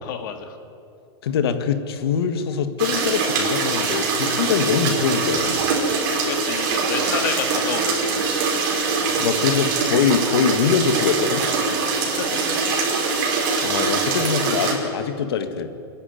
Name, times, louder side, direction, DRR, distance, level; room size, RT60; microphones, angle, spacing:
voice 1, 0.0-0.6 6.3-8.4 12.2-12.5, left 7 dB, 55° left, 6 dB, 2.0 m, -30 dB
voice 2, 1.2-5.7 9.1-11.4 13.6-15.7, left 7 dB, 80° left, 8 dB, 1.7 m, -23 dB
sound 1, 2.8-14.7, right 4 dB, 50° right, 5.2 m, -23 dB
27.0 x 11.0 x 9.4 m, 2.6 s
supercardioid pair, 170°, 13 cm